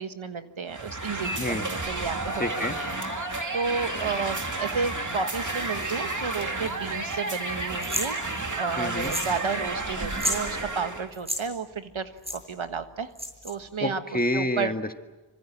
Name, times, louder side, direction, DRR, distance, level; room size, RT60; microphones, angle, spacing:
voice 1, 0.0-8.2 8.6-13.1 13.4-14.0 14.3-14.7, right 5 dB, 80° right, 9 dB, 1.5 m, -32 dB
sound 1, 0.7-11.1, right 2 dB, 40° right, 2.6 m, -31 dB
voice 2, 1.4-1.7 2.4-2.8 8.8-9.1 13.8-14.9, left 1 dB, 20° left, 7 dB, 1.7 m, -28 dB
sound 2, 7.8-8.1 9.0-9.4 9.6-9.7 10.1-10.4 11.1-11.4 12.2-12.4 13.2-13.5, equal, 10° right, 7.2 m, -30 dB
26.5 x 25.0 x 7.4 m, 1.2 s
wide cardioid pair, 65°, 47 cm